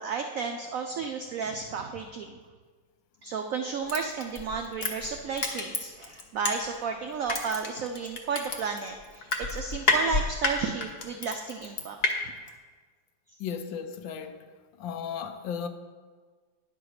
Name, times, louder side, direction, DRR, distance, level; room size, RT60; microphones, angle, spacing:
voice 1, 0.0-2.4 3.2-12.3, right 5 dB, 80° right, 4 dB, 0.7 m, -33 dB
Crushing, 3.9-6.9 7.3-12.1 12.5-12.6, left 3 dB, 40° left, 0.9 m, -29 dB
voice 2, 13.4-14.4 14.8-15.7, left 7 dB, 80° left, 9 dB, 1.4 m, -35 dB
9.8 x 5.0 x 6.4 m, 1.5 s
omnidirectional pair, 2.1 m